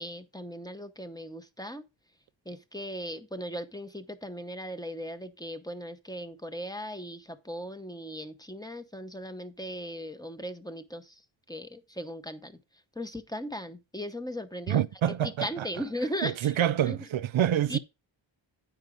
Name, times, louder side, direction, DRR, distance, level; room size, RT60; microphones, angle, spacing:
voice 1, 0.0-1.8 2.5-11.2 11.5-12.6 13.0-14.8 15.2-16.6 16.8-17.0 17.7-17.8, equal, 10° left, 0.8 m, -38 dB
voice 2, 14.7-15.7 16.2-17.8, right 10 dB, 85° right, 0.6 m, -27 dB
9.6 x 4.9 x 5.0 m
wide cardioid pair, 115°, 46 cm